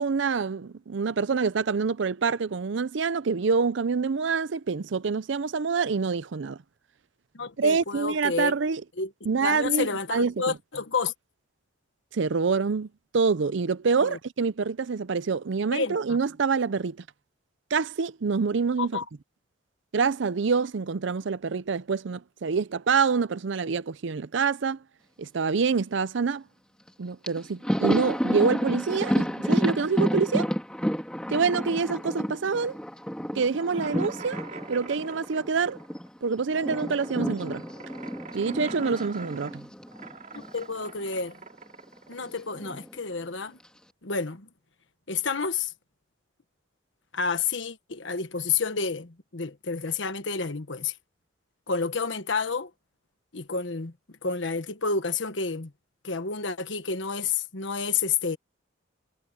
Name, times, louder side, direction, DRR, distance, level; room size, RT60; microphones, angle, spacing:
voice 1, 0.0-6.6 7.6-8.8 9.3-10.5 12.1-12.9 13.1-17.0 17.7-19.0 19.9-24.8 25.2-26.4 27.0-30.5 31.3-32.8 33.4-34.4 34.7-35.8 36.2-37.6 38.3-39.7, right 5 dB, 65° right, 0.5 m, -26 dB
voice 2, 7.3-8.5 9.0-9.1 9.4-11.1 14.0-14.2 15.7-16.0 18.8-19.0 40.5-41.4 42.1-43.6 44.0-44.5 45.1-45.7 47.1-50.9 51.7-52.7 53.3-53.9 54.2-55.7 56.0-58.4, left 5 dB, 70° left, 1.3 m, -29 dB
Thunder, 26.9-27.0 27.2-36.1 36.3-40.6 40.9-41.1 42.2-42.9, equal, 5° left, 2.3 m, -30 dB
sound 1, 33.7-43.1, right 4 dB, 40° right, 2.9 m, -44 dB
head